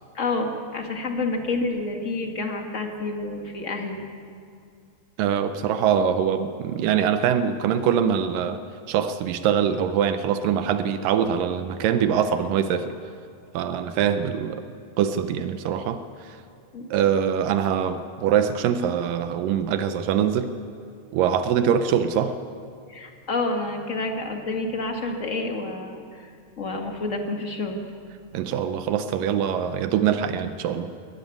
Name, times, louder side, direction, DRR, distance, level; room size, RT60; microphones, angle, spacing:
voice 1, 0.1-4.0 16.7-16.9 22.9-26.3 26.6-27.8, left 2 dB, 30° left, 3 dB, 1.4 m, -29 dB
voice 2, 5.2-8.6 8.9-12.9 13.5-14.6 15.0-16.4 16.9-20.5 21.1-22.4 28.3-30.9, right 8 dB, 85° right, 10 dB, 2.4 m, -23 dB
22.5 x 14.5 x 9.3 m, 2.4 s
omnidirectional pair, 3.8 m